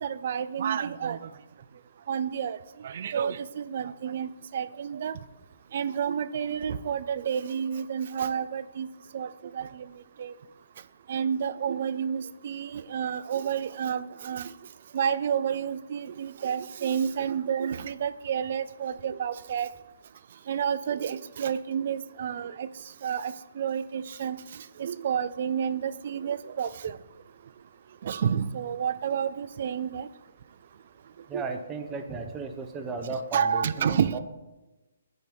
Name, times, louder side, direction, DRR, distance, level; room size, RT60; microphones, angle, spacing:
voice 1, 0.0-1.2 2.1-5.2 5.7-8.9 9.1-9.9 10.2-10.3 11.1-14.5 14.9-19.7 20.5-22.7 23.0-27.0 28.0-30.1 31.3-31.4 33.3-34.2, right 8 dB, 55° right, 14 dB, 0.3 m, -30 dB
voice 2, 31.3-34.2, right 4 dB, 15° right, 5 dB, 0.6 m, -35 dB
5.3 x 4.6 x 5.2 m, 1.1 s
hypercardioid pair, 145°, 0 cm